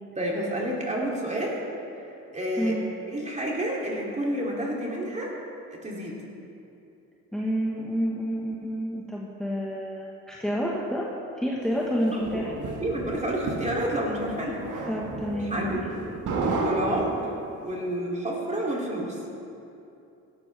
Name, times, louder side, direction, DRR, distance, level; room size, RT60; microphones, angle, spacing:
voice 1, 0.2-1.6 2.3-2.7 3.1-5.3 5.7-6.2 12.1-14.6 15.2-15.8 16.6-17.2 17.5-19.2, right 1 dB, 25° right, -3 dB, 3.0 m, -30 dB
voice 2, 7.3-11.1 11.4-12.5 14.9-15.9, equal, ahead, -5 dB, 1.5 m, -29 dB
sound 1, 11.8-17.6, right 3 dB, 80° right, 1.9 m, -32 dB
16.5 x 11.5 x 3.5 m, 2.7 s
cardioid pair, 90°, 30 cm